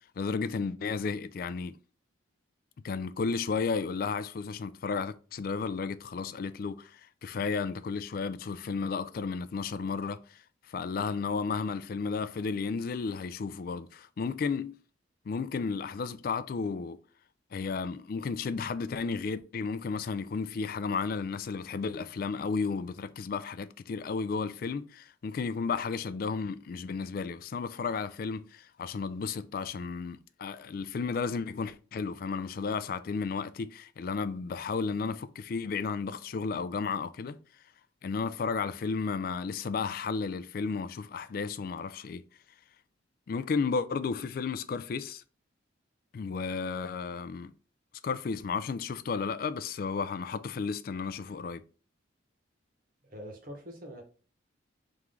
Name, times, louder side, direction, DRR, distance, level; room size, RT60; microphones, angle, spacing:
voice 1, 0.2-1.7 2.8-10.4 10.7-14.8 15.3-17.0 17.5-37.4 38.0-42.2 43.3-45.2 46.1-47.5 48.0-51.6, left 5 dB, 45° left, 0.3 m, -33 dB
voice 2, 53.0-54.0, equal, 45° right, 1.1 m, -44 dB
3.6 x 3.1 x 3.6 m
head